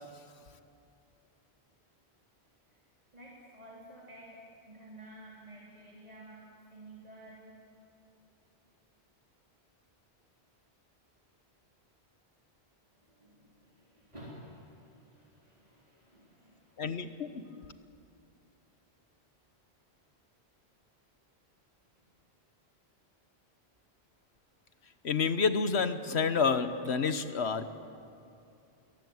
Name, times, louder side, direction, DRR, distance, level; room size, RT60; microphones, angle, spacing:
voice 1, 2.5-2.8 3.1-7.6 12.9-17.0 22.0-22.1, right 1 dB, 40° right, -5 dB, 3.6 m, -52 dB
voice 2, 16.8-17.4 25.0-27.8, left 5 dB, 80° left, 10 dB, 1.4 m, -29 dB
26.0 x 22.5 x 9.5 m, 2.6 s
omnidirectional pair, 1.1 m